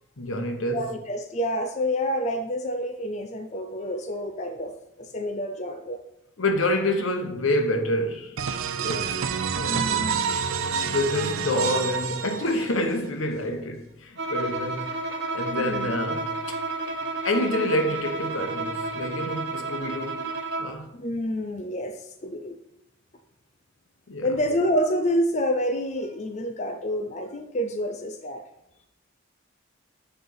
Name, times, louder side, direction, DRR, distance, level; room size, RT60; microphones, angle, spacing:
voice 1, 0.2-0.8 6.4-8.4 8.8-9.2 9.5-9.9 10.8-14.9 15.3-16.6 17.2-20.2 20.6-20.9 24.1-24.3, left 1 dB, 80° left, 0.9 m, -27 dB
voice 2, 0.7-6.0 9.6-10.3 15.5-15.9 20.7-22.6 24.2-28.5, equal, 35° left, 0.4 m, -28 dB
sound 1, 8.4-13.0, right 6 dB, 90° right, 0.5 m, -28 dB
Bowed string instrument, 14.2-20.8, right 2 dB, 55° right, 0.7 m, -31 dB
9.5 x 3.3 x 3.9 m
head